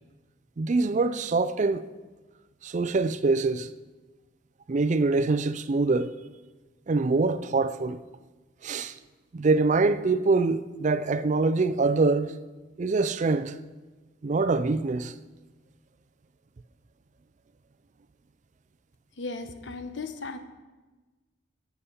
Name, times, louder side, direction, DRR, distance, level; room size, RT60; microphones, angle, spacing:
voice 1, 0.6-1.9 2.6-3.7 4.7-6.1 6.9-8.0 8.6-9.0 9.3-12.3 12.8-13.6 14.2-15.1, right 3 dB, 40° right, 0.4 m, -24 dB
voice 2, 19.2-20.4, left 3 dB, 70° left, 0.9 m, -36 dB
13.5 x 7.1 x 5.6 m
head